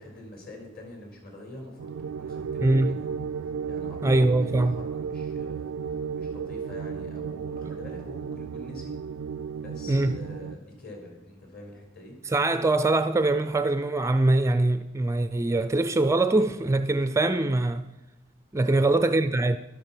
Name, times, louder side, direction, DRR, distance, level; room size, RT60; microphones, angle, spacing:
voice 1, 0.0-1.9 2.1-3.1 3.7-8.9 9.5-12.2 18.5-18.8, left 1 dB, 50° left, 4.6 m, -45 dB
sound 1, 1.8-10.6, right 6 dB, 85° right, 0.3 m, -34 dB
voice 2, 2.6-3.0 4.0-4.8 9.9-10.2 12.3-17.9 18.5-19.6, right 2 dB, 15° right, 0.4 m, -23 dB
12.0 x 12.0 x 5.9 m
head